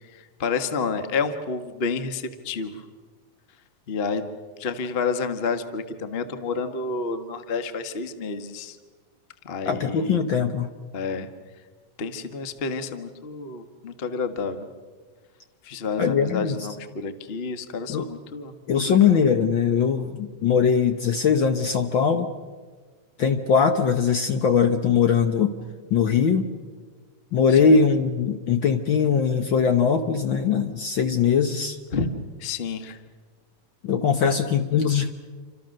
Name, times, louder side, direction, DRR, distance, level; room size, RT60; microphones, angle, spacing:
voice 1, 0.1-2.8 3.9-4.2 4.6-8.8 9.4-10.2 10.9-11.3 12.0-14.7 15.6-18.5 18.9-19.2 27.5-27.8 31.9-32.1 32.4-33.0 34.2-34.3, left 4 dB, 85° left, 8 dB, 0.5 m, -30 dB
voice 2, 9.6-10.7 16.0-16.5 17.9-18.1 18.7-22.3 23.2-25.5 25.9-26.5 27.3-31.8 33.8-35.1, left 6 dB, 70° left, 7 dB, 1.1 m, -21 dB
28.5 x 26.0 x 6.6 m, 1.5 s
omnidirectional pair, 3.6 m